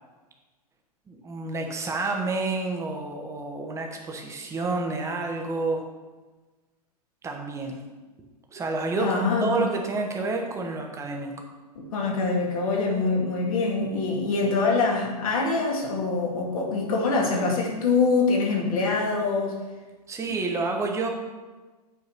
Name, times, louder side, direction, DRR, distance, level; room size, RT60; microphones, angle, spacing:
voice 1, 1.1-5.9 7.2-7.8 8.5-11.4 20.1-21.1, right 3 dB, 15° right, 2 dB, 1.2 m, -29 dB
voice 2, 9.0-9.5 11.9-19.6, left 3 dB, 55° left, -1 dB, 2.2 m, -24 dB
8.4 x 4.6 x 5.6 m, 1.2 s
figure-of-eight pair, 105°, 21 cm